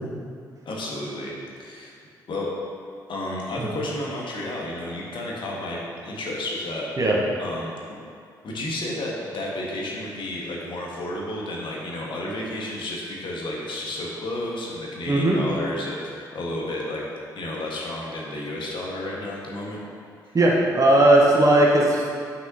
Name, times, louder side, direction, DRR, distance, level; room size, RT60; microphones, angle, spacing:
voice 1, 0.6-1.3 1.6-1.9 2.3-2.5 3.1-6.9 7.4-8.0 8.4-17.0 17.3-19.8 20.2-20.4, left 1 dB, 50° left, -3 dB, 1.6 m, -31 dB
voice 2, 15.1-15.4 20.3-22.2, right 1 dB, 35° right, -3 dB, 1.1 m, -18 dB
9.5 x 6.0 x 2.9 m, 2.3 s
figure-of-eight pair, 40°, 10 cm